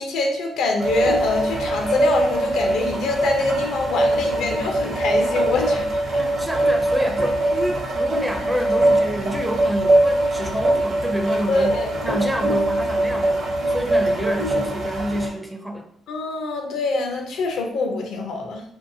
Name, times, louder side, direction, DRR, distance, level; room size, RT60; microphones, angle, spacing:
voice 1, 0.0-6.0 11.5-11.9 16.1-18.6, left 3 dB, 80° left, 2 dB, 0.5 m, -24 dB
sound 1, 0.8-15.3, right 1 dB, 55° right, 0.8 m, -22 dB
voice 2, 6.2-11.7 12.0-15.9, equal, 10° right, 4 dB, 0.4 m, -28 dB
2.7 x 2.3 x 2.6 m, 0.69 s
cardioid pair, 90°, 0 cm